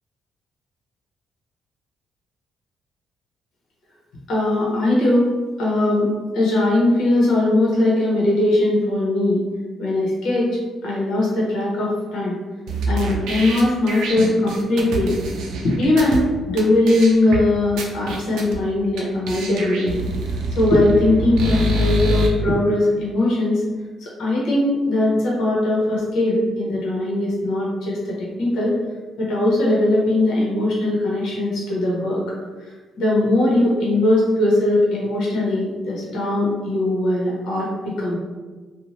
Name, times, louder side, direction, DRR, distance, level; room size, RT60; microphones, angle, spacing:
voice 1, 4.3-5.3 5.6-9.4 9.8-10.5 10.8-12.3 12.9-15.2 15.6-20.1 20.6-23.6 24.0-28.8 29.2-32.2 32.7-38.2, left 1 dB, 80° left, -5 dB, 0.9 m, -20 dB
sound 1, 12.7-16.2 16.6-16.7 16.9-17.4 17.8-18.6 19.0-19.1 19.3-22.3, right 1 dB, 85° right, 0.5 m, -25 dB
2.6 x 2.2 x 3.1 m, 1.3 s
cardioid pair, 90°, 0 cm